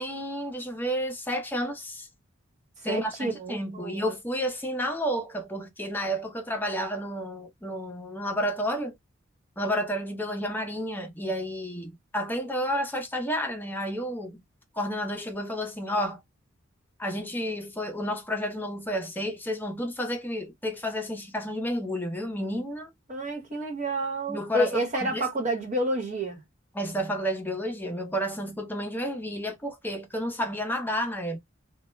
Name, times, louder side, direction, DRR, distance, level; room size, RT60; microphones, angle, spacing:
voice 1, 0.0-2.1 2.8-8.9 9.6-14.4 14.7-16.2 17.0-22.9 24.3-25.3 26.7-31.4, equal, 10° left, 0.6 m, -31 dB
voice 2, 2.9-4.0 23.1-26.4, right 1 dB, 35° right, 1.0 m, -29 dB
2.3 x 2.1 x 3.0 m
head